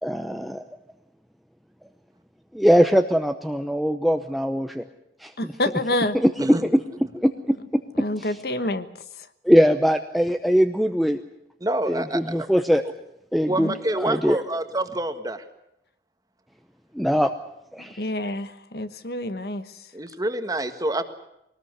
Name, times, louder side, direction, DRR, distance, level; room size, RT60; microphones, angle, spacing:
voice 1, 0.0-0.6 2.5-4.8 5.2-5.3 6.2-6.3 7.1-7.8 9.4-11.2 11.9-12.8 13.3-13.7 14.0-14.4 16.9-17.3 17.7-18.0, equal, ahead, 6 dB, 0.8 m, -21 dB
voice 2, 5.4-6.2 7.9-8.9 9.1-9.3 13.6-13.8 17.8-19.9, left 1 dB, 60° left, 11 dB, 1.4 m, -28 dB
voice 3, 11.6-12.5 13.4-15.4 19.9-21.1, right 1 dB, 20° right, 8 dB, 1.7 m, -27 dB
22.0 x 19.5 x 8.1 m, 0.82 s
head